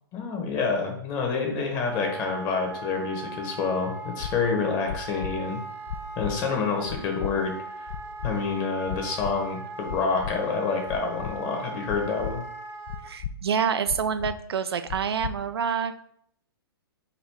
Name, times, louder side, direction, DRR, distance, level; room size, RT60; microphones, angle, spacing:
voice 1, 0.1-5.6 6.2-7.5 7.8-7.9 8.2-12.4, left 4 dB, 30° left, 2 dB, 1.2 m, -28 dB
Wind instrument woodwind instrument, 1.8-13.1, right 3 dB, 20° right, 0.5 m, -39 dB
sound 1, 4.2-4.3 4.9-5.3 5.9-6.3 6.9-7.3 7.9-8.3 8.9-9.3 9.9-10.3 10.9-11.3 11.9-12.3 12.9-13.3 13.9-14.3 14.9-15.3, left 9 dB, 60° left, 0.4 m, -34 dB
voice 2, 13.0-16.0, right 7 dB, 85° right, 11 dB, 0.4 m, -27 dB
4.0 x 2.6 x 4.5 m, 0.66 s
hypercardioid pair, 130°, 13 cm